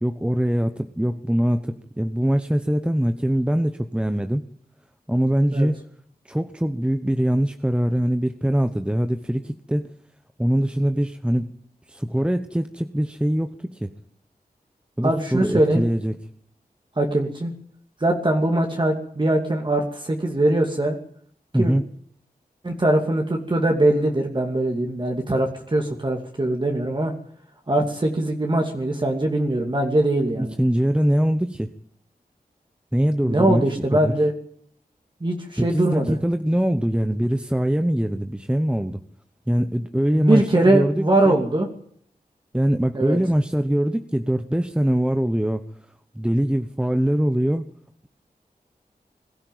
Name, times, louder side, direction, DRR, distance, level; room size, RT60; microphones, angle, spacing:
voice 1, 0.0-4.4 5.1-5.8 6.2-9.9 10.4-11.5 11.9-13.9 15.0-16.2 21.5-21.8 30.3-31.7 32.9-33.6 33.9-34.1 35.6-39.0 39.5-41.4 42.5-45.6 46.2-47.7, equal, 5° right, 8 dB, 1.0 m, -22 dB
voice 2, 15.0-15.8 17.0-17.5 18.0-21.0 21.6-21.7 22.6-27.1 27.7-30.5 33.2-34.3 35.2-36.2 40.2-41.7 42.9-43.2, right 1 dB, 30° right, 1 dB, 2.6 m, -21 dB
21.5 x 13.5 x 9.3 m, 0.63 s
wide cardioid pair, 90°, 16 cm